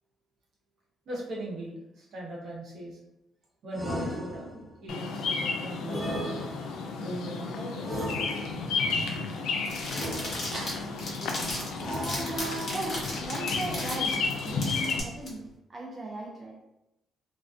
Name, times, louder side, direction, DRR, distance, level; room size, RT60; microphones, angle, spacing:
voice 1, 1.1-3.0 3.6-6.3 7.0-8.0 10.1-10.2 10.5-10.9, right 1 dB, 70° right, -5 dB, 0.9 m, -39 dB
sound 1, 3.7-4.8 5.9-6.9 7.8-8.8 9.9-10.8 11.8-12.7, equal, ahead, 0.9 m, -36 dB
Bird vocalization bird call bird song, 4.9-15.0, left 4 dB, 85° left, 0.3 m, -32 dB
sound 2, 9.6-15.3, left 1 dB, 45° left, 1.1 m, -36 dB
voice 2, 11.9-16.6, right 2 dB, 30° right, -2 dB, 0.4 m, -37 dB
2.4 x 2.1 x 2.4 m, 0.89 s
cardioid pair, 90°, 0 cm